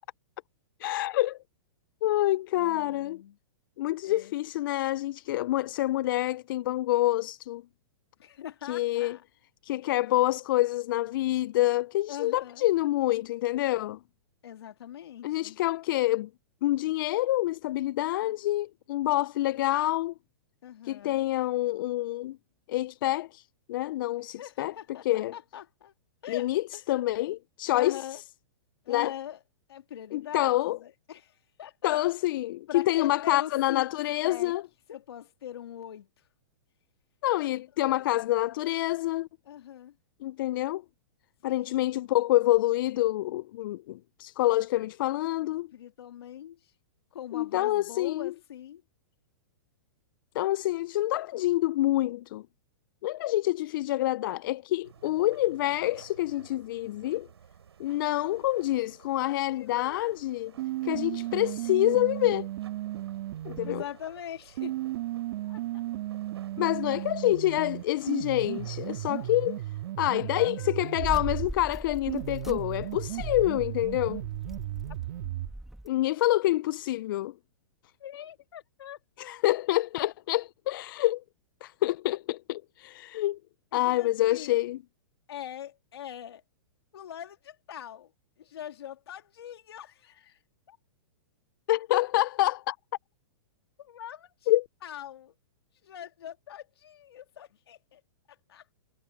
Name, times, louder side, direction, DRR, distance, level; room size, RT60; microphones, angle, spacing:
voice 1, 0.8-1.4 2.0-3.2 3.8-7.6 8.7-9.2 9.6-14.0 15.2-16.3 16.6-20.1 20.9-22.4 22.7-23.4 23.7-24.7 25.1-25.3 26.3-28.2 28.9-29.1 30.1-30.8 31.8-34.6 37.2-39.3 40.2-40.8 41.4-45.7 47.3-48.3 50.3-52.4 53.0-57.3 57.8-60.5 60.8-62.5 63.4-63.8 66.6-69.6 70.0-74.2 75.9-77.3 79.2-81.2 81.6-83.4 83.7-84.8 91.7-92.8 94.5-94.7, left 16 dB, 55° left, 0.4 m, -27 dB
voice 2, 2.5-3.4 4.0-4.3 8.2-9.2 12.1-12.7 14.4-15.6 20.6-21.3 24.3-25.9 26.2-26.8 27.7-28.2 28.8-29.4 29.7-31.9 32.7-33.9 34.2-34.6 34.9-36.1 37.9-38.1 39.4-40.0 41.4-42.0 45.4-46.7 47.1-48.8 55.9-56.0 59.5-60.0 63.6-64.8 65.5-65.6 69.1-69.3 70.3-71.0 78.0-79.4 83.7-84.6 85.3-86.4 86.9-88.1 88.4-90.4 90.7-90.8 93.8-94.5 94.8-95.3 95.8-98.0 98.3-98.7, left 10 dB, 75° left, 3.1 m, -42 dB
sound 1, 54.8-69.9, right 8 dB, 90° right, 7.3 m, -55 dB
sound 2, 60.6-63.9 64.6-71.5 72.1-75.5, right 15 dB, 55° right, 2.4 m, -35 dB
sound 3, 71.0-75.9, right 1 dB, ahead, 1.6 m, -40 dB
hypercardioid pair, 140°, 13 cm